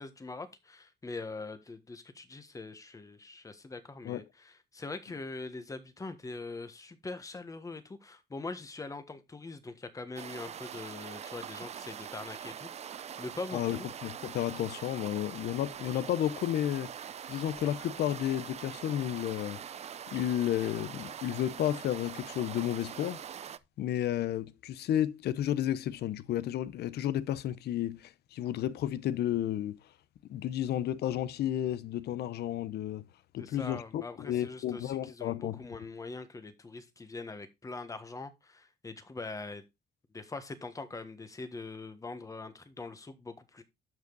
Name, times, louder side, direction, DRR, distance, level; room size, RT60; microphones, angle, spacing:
voice 1, 0.0-13.9 33.4-39.6 40.1-43.6, left 3 dB, 20° left, 1.4 m, -43 dB
sound 1, 10.2-23.6, right 8 dB, 40° right, 0.5 m, -43 dB
voice 2, 13.5-16.9 17.3-19.6 20.1-23.2 23.8-29.8 30.3-33.0 33.3-35.6, left 11 dB, 75° left, 0.7 m, -32 dB
sound 2, 15.5-23.7 24.8-24.9, right 8 dB, 90° right, 4.0 m, -63 dB
12.0 x 5.3 x 4.0 m
cardioid pair, 140°, 17 cm